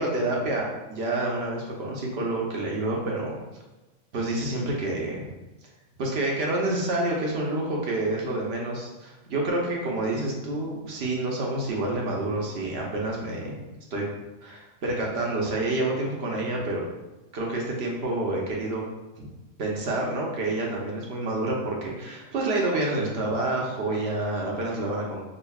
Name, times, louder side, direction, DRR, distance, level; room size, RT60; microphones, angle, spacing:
voice 1, 0.0-3.4 4.1-5.3 6.0-13.6 13.9-14.1 14.4-16.8 17.3-18.8 19.2-19.3 19.6-25.2, right 2 dB, 60° right, -2 dB, 1.0 m, -28 dB
5.2 x 2.4 x 2.3 m, 1.1 s
omnidirectional pair, 1.3 m